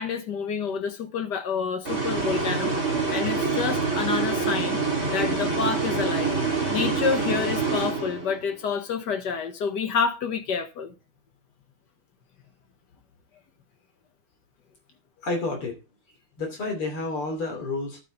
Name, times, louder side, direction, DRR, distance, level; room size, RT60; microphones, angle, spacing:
voice 1, 0.0-2.8 3.1-4.8 5.1-6.3 6.7-10.9, left 6 dB, 55° left, 1.7 m, -28 dB
sound 1, 1.8-8.5, right 4 dB, 35° right, 3.3 m, -26 dB
voice 2, 15.2-15.8 16.4-18.0, left 3 dB, 75° left, 3.9 m, -30 dB
11.5 x 10.0 x 3.9 m
omnidirectional pair, 2.4 m